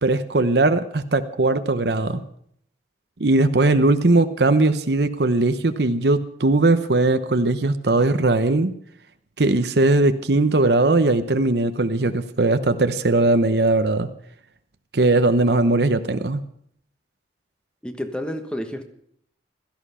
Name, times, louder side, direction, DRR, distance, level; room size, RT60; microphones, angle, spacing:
voice 1, 0.0-2.2 3.2-8.7 9.4-14.1 14.9-16.4, right 2 dB, 70° right, 9 dB, 0.9 m, -19 dB
voice 2, 17.8-18.9, equal, 5° left, 7 dB, 1.2 m, -30 dB
16.5 x 13.5 x 5.7 m, 0.68 s
head